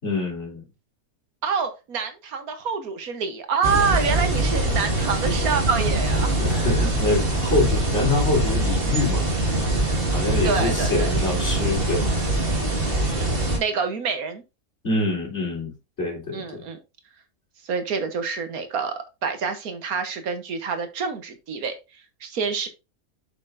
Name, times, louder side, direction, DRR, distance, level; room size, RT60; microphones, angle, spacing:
voice 1, 0.0-0.6 6.3-9.3 10.1-12.1 14.8-15.7 16.0-16.7, left 2 dB, 50° left, 4.0 m, -25 dB
voice 2, 1.4-6.4 10.4-11.1 13.1-14.4 16.3-16.8 17.6-21.7 22.2-22.7, right 5 dB, 75° right, 1.6 m, -27 dB
sound 1, 3.6-13.6, right 1 dB, 40° right, 2.2 m, -23 dB
7.5 x 6.7 x 2.6 m
omnidirectional pair, 1.6 m